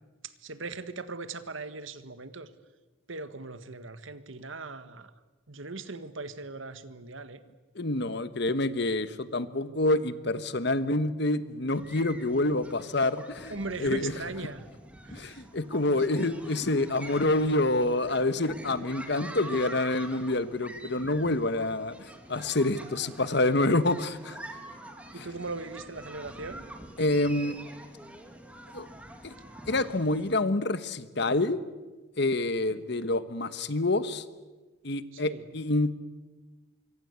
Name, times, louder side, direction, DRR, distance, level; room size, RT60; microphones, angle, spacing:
voice 1, 0.4-2.5 3.1-5.1 5.5-7.4 13.5-14.7 15.0-15.4 15.9-16.4 25.1-26.6 32.7-32.9 35.1-35.4, right 3 dB, 75° right, 12 dB, 1.6 m, -39 dB
voice 2, 7.7-14.2 15.1-24.4 25.2-25.3 27.0-27.6 28.7-28.9 29.2-29.3 29.7-31.6 32.2-34.2 34.8-36.0, left 2 dB, 55° left, 14 dB, 1.3 m, -27 dB
sound 1, 11.7-30.4, right 1 dB, 5° right, 2.5 m, -46 dB
25.5 x 24.0 x 8.2 m, 1.2 s
head